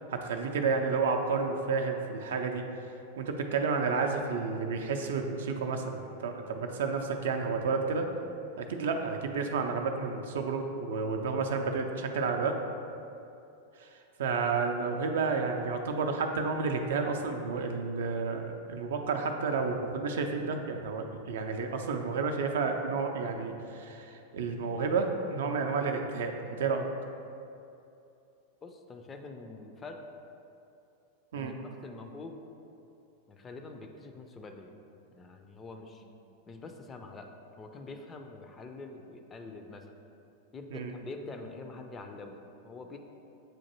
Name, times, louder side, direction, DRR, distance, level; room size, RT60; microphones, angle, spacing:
voice 1, 0.1-2.6 3.2-8.1 8.6-12.5 13.8-13.9 14.2-26.9 31.3-31.5 40.7-40.9, right 4 dB, 60° right, 4 dB, 0.3 m, -31 dB
voice 2, 28.6-30.0 31.3-32.4 33.3-34.7 35.1-36.0 36.5-37.3 37.6-39.9 40.5-42.4 42.6-43.0, left 3 dB, 20° left, 4 dB, 0.4 m, -45 dB
7.6 x 2.5 x 2.8 m, 2.7 s
figure-of-eight pair, 90°, 0 cm